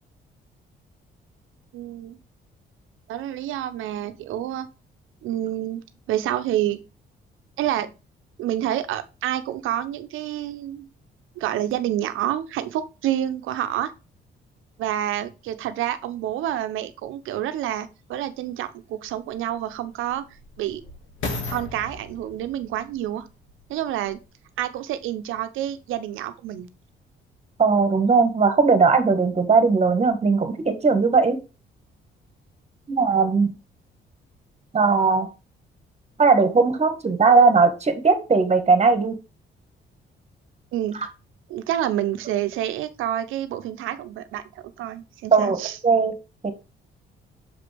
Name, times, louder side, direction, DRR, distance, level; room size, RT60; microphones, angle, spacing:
voice 1, 1.7-2.2 3.1-4.7 5.2-6.8 7.6-7.9 8.4-10.9 11.4-13.9 14.8-20.3 20.6-20.8 21.5-23.3 23.7-24.2 24.6-26.7 40.7-41.1 41.5-45.8, right 12 dB, 90° right, 10 dB, 0.8 m, -28 dB
sound 1, 18.2-18.3 19.0-24.3 25.0-25.1, left 3 dB, 75° left, 2.0 m, -37 dB
voice 2, 27.6-31.4 32.9-33.5 34.7-35.3 36.2-39.1 45.3-46.1 46.4-46.5, right 4 dB, 35° right, 7 dB, 1.6 m, -18 dB
6.6 x 5.1 x 3.4 m, 0.29 s
cardioid pair, 90°, 20 cm